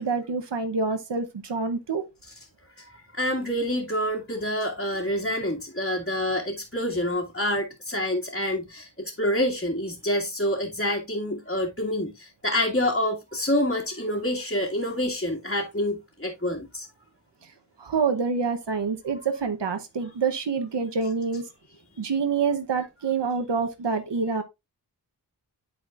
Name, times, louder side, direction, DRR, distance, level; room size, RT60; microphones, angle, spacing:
voice 1, 0.0-2.0 17.8-21.5 22.0-24.4, right 5 dB, 85° right, 0.9 m, -27 dB
voice 2, 2.8-16.9, left 1 dB, 30° left, 1.9 m, -27 dB
12.0 x 4.3 x 2.4 m
wide cardioid pair, 45°, 41 cm